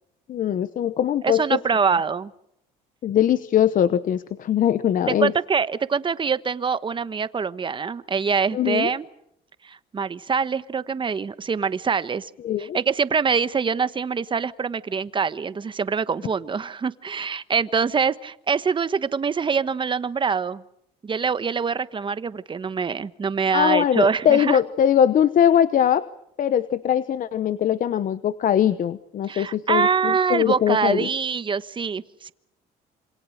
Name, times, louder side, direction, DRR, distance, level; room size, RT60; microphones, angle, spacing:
voice 1, 0.3-1.6 3.0-5.3 8.5-8.9 12.4-12.8 23.5-26.0 26.4-31.1, left 9 dB, 55° left, 14 dB, 1.0 m, -21 dB
voice 2, 1.2-2.3 5.1-9.1 9.6-12.3 12.6-20.6 21.0-24.6 29.3-32.3, right 6 dB, 30° right, 14 dB, 1.2 m, -24 dB
27.0 x 26.0 x 6.6 m, 0.77 s
cardioid pair, 110°, 17 cm